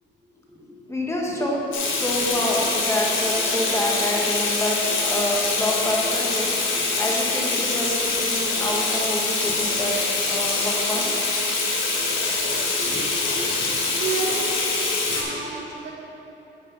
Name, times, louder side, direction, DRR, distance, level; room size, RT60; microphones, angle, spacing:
voice 1, 0.5-10.0 10.2-11.1 12.6-13.7 15.0-15.3, left 1 dB, 15° left, -3 dB, 1.7 m, -28 dB
Water tap faucet / Sink (filling or washing), 1.7-15.2, left 3 dB, 75° left, 1.8 m, -24 dB
voice 2, 13.5-14.5 15.1-15.9, right 5 dB, 60° right, -2 dB, 1.2 m, -31 dB
9.2 x 5.4 x 5.7 m, 2.9 s
cardioid pair, 90°, 20 cm